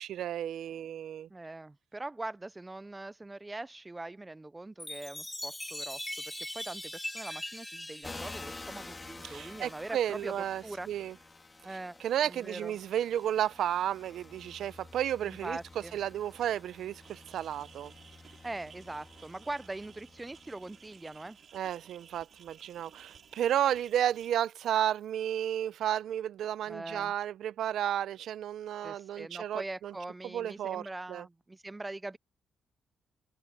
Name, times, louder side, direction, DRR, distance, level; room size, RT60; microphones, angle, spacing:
voice 1, 0.0-1.3 9.2-11.1 12.0-15.6 15.9-17.9 21.5-29.9 30.2-31.3, right 10 dB, 70° right, 0.7 m, -32 dB
voice 2, 1.3-10.3 10.6-10.9 11.6-12.0 12.2-12.7 15.2-16.0 18.4-21.4 26.7-27.1 28.8-32.2, right 2 dB, 15° right, 0.5 m, -42 dB
Chime, 4.8-9.4, left 1 dB, 5° left, 2.7 m, -41 dB
sound 1, 8.0-21.4 22.1-25.0, left 3 dB, 25° left, 3.5 m, -50 dB
sound 2, 17.0-24.3, right 7 dB, 55° right, 3.3 m, -57 dB
cardioid pair, 90°, 0 cm